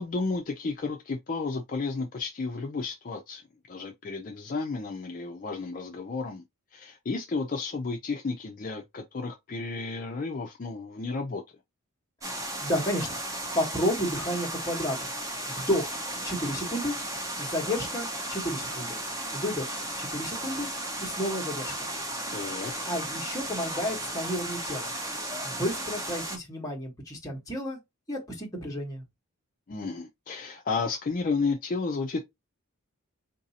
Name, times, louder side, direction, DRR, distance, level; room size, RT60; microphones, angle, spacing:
voice 1, 0.0-6.4 6.7-11.4 22.3-22.7 29.7-32.2, left 4 dB, 40° left, 0.4 m, -32 dB
sound 1, 12.2-26.4, right 1 dB, 15° right, 0.6 m, -35 dB
voice 2, 12.6-13.1 13.5-15.1 15.5-16.0 16.2-16.9 17.4-19.0 19.3-20.7 21.0-21.9 22.9-24.9 25.4-27.8 28.1-29.0, equal, 15° left, 1.1 m, -31 dB
3.8 x 2.6 x 2.7 m
head